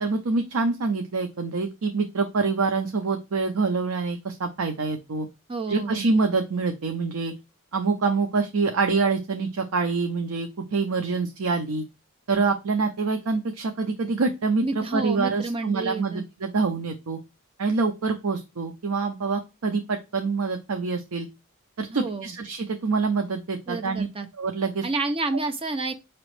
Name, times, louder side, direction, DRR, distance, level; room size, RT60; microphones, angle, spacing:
voice 1, 0.0-5.3 5.7-7.3 7.7-11.8 12.3-17.2 17.6-21.3 21.8-24.1 24.4-24.9, right 4 dB, 80° right, 0.6 m, -26 dB
voice 2, 5.5-6.1 14.6-16.2 21.9-22.3 23.7-24.3 24.8-25.9, right 3 dB, 25° right, 0.5 m, -29 dB
5.1 x 2.9 x 3.2 m
head